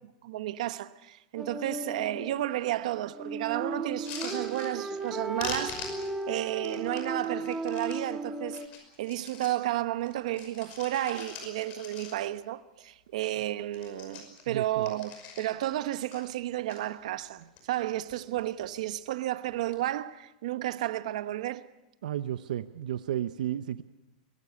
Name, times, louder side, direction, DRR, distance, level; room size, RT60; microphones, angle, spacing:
voice 1, 0.2-6.0 6.3-8.6 9.0-21.7, right 14 dB, 60° right, 1.1 m, -32 dB
sound 1, 1.4-8.7, right 2 dB, 10° right, 1.7 m, -36 dB
sound 2, 3.9-5.1 5.4-8.0 8.4-9.6 10.0-12.5 12.8-12.9 13.1-13.4 13.7-15.7 16.1-16.8 17.3-17.8 18.1-18.7 19.5-19.8, left 5 dB, 30° left, 5.6 m, -43 dB
voice 2, 14.5-14.9 22.0-23.8, right 11 dB, 85° right, 0.8 m, -33 dB
23.0 x 19.0 x 8.3 m
supercardioid pair, 165°, 4 cm